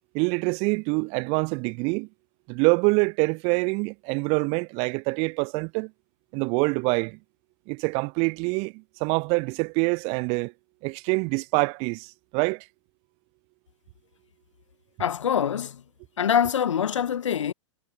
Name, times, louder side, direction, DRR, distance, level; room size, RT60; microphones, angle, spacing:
voice 1, 0.1-2.1 2.5-5.9 6.3-7.2 7.7-10.5 10.8-12.6, right 32 dB, 35° right, 0.9 m, -25 dB
voice 2, 15.0-15.8 16.2-17.5, left 8 dB, 70° left, 1.1 m, -24 dB
figure-of-eight pair, 110°, 16 cm